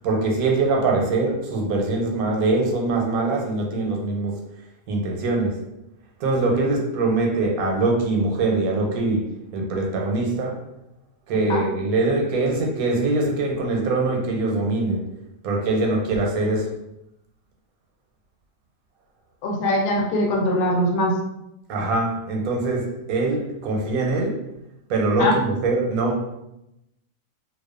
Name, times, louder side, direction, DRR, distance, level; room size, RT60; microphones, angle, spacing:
voice 1, 0.0-4.4 4.9-5.6 6.2-10.6 11.3-15.1 15.4-16.7 21.7-24.5 24.9-26.3, right 2 dB, 90° right, 0 dB, 1.1 m, -23 dB
voice 2, 19.4-21.2 25.2-25.3, left 1 dB, 85° left, 1 dB, 1.0 m, -21 dB
2.4 x 2.2 x 2.4 m, 0.86 s
omnidirectional pair, 1.5 m